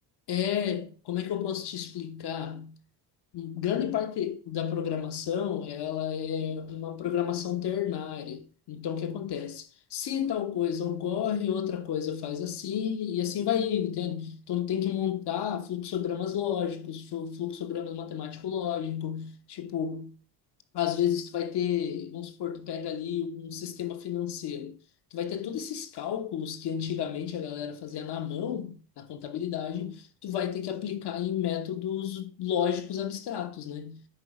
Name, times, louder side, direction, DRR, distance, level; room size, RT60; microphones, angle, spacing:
voice 1, 0.3-2.8 3.3-20.1 20.7-24.8 25.1-34.0, left 9 dB, 65° left, 1.3 m, -31 dB
9.8 x 3.8 x 4.9 m
cardioid pair, 85°, 43 cm